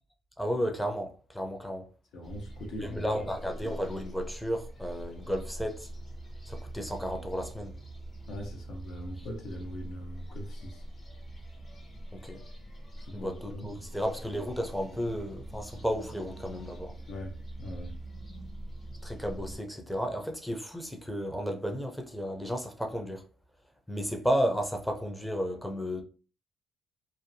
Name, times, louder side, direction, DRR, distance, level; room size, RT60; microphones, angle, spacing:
voice 1, 0.4-1.9 2.8-5.9 6.5-7.8 12.1-12.4 13.1-16.9 19.0-23.2 23.9-26.0, equal, 5° left, 0.5 m, -33 dB
voice 2, 2.1-3.5 8.3-10.8 13.0-13.9 14.9-15.0 17.1-17.9, equal, 80° left, 0.8 m, -41 dB
sound 1, 2.2-19.6, right 1 dB, 45° left, 0.9 m, -44 dB
2.6 x 2.1 x 2.6 m
cardioid pair, 90°, 0 cm